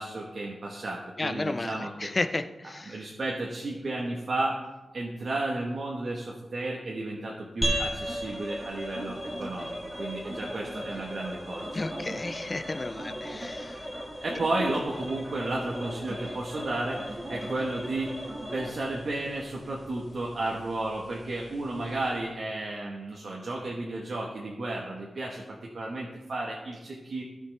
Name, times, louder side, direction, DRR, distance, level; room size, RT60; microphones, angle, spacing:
voice 1, 0.0-2.1 2.9-4.6 4.9-12.2 14.2-18.1 18.5-27.2, right 2 dB, 50° right, -2 dB, 1.1 m, -33 dB
voice 2, 1.2-3.0 11.7-13.9, left 2 dB, 30° left, 9 dB, 0.4 m, -33 dB
sound 1, 7.6-22.2, equal, 5° left, 1.8 m, -38 dB
sound 2, 8.1-18.7, right 1 dB, 30° right, 1.8 m, -42 dB
16.5 x 5.7 x 3.2 m, 1.1 s
wide cardioid pair, 165°, 0 cm